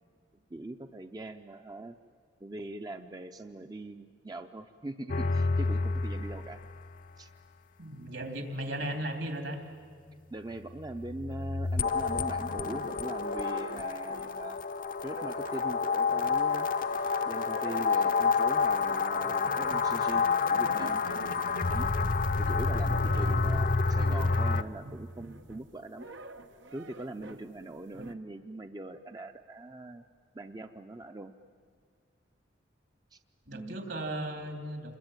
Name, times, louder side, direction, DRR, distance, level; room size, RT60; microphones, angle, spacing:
voice 1, 0.5-2.0 2.4-6.6 7.2-7.3 10.3-14.6 15.0-16.7 17.2-21.0 21.7-21.9 22.4-26.1 26.7-30.0 30.3-31.3 33.1-33.2 33.5-33.8, right 2 dB, 20° right, 7 dB, 0.6 m, -41 dB
sound 1, 5.1-6.8 10.8-24.6, left 4 dB, 45° left, 0.6 m, -29 dB
voice 2, 7.8-9.6 23.1-23.2 33.5-35.0, right 1 dB, 70° right, 6 dB, 3.0 m, -36 dB
sound 2, 11.6-12.7 13.1-14.6 14.8-27.5 27.9-28.1, right 1 dB, 85° right, 1.2 m, -48 dB
27.5 x 21.5 x 9.0 m, 2.1 s
head